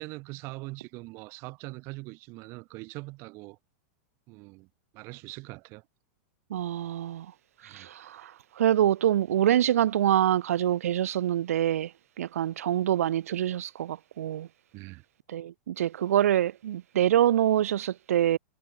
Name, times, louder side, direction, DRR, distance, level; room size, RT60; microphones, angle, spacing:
voice 1, 0.0-3.6 4.3-4.7 4.9-5.8 7.6-7.9 14.7-15.1, right 25 dB, 35° right, 2.7 m, -42 dB
voice 2, 6.5-7.3 7.6-11.9 12.2-14.5 15.3-18.4, right 11 dB, 90° right, 1.0 m, -25 dB
supercardioid pair, 165°, 8 cm